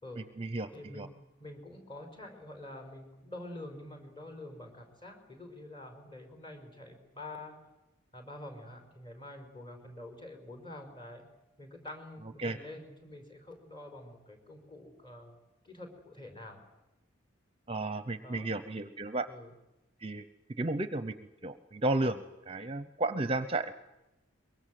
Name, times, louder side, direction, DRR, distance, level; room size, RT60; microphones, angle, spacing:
voice 1, 0.2-0.7 1.0-1.1 12.4-12.6 17.7-19.3 20.0-20.2 20.6-21.2 21.4-23.7, right 2 dB, 30° right, 11 dB, 0.9 m, -33 dB
voice 2, 0.7-1.1 1.4-7.6 8.1-11.2 11.6-15.4 15.6-16.6 18.2-18.5 19.3-19.5, left 1 dB, 25° left, 5 dB, 4.9 m, -47 dB
23.5 x 23.0 x 7.8 m, 0.98 s
head